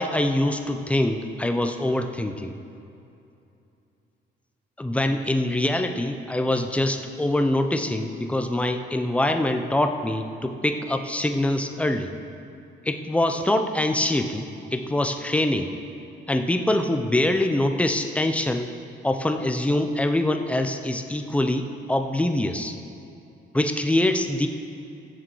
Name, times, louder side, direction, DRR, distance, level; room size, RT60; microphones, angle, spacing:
voice 1, 0.0-2.6 4.8-12.1 12.9-15.7 16.3-18.7 19.0-22.7 23.5-24.5, left 1 dB, 5° left, 6 dB, 0.7 m, -24 dB
15.5 x 6.7 x 4.6 m, 2.7 s
cardioid pair, 90°, 20 cm